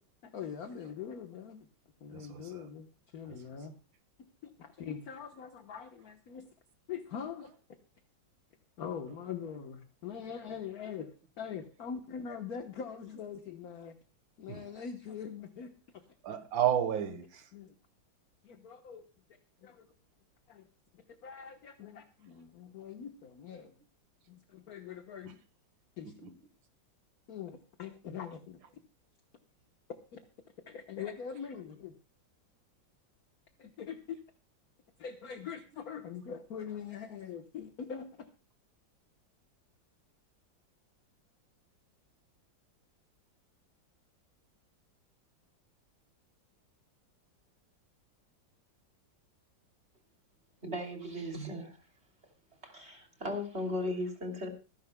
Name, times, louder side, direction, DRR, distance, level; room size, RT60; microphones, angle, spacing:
voice 1, 0.2-1.6 2.0-3.7 4.6-6.5 6.9-7.5 8.8-13.9 14.4-16.0 17.5-17.7 18.4-19.1 19.6-19.9 20.5-20.7 20.9-23.7 24.3-25.4 26.0-26.1 27.3-28.6 30.1-30.2 30.7-31.9 33.6-34.2 35.0-38.1, left 7 dB, 55° left, 1.5 m, -43 dB
voice 2, 2.1-2.7 3.3-3.4 14.5-14.7 16.2-17.5 25.2-25.4 26.0-26.3, right 10 dB, 85° right, 2.0 m, -33 dB
voice 3, 50.6-51.8 52.6-54.5, left 1 dB, 35° right, 3.1 m, -37 dB
26.0 x 10.5 x 2.2 m
omnidirectional pair, 2.0 m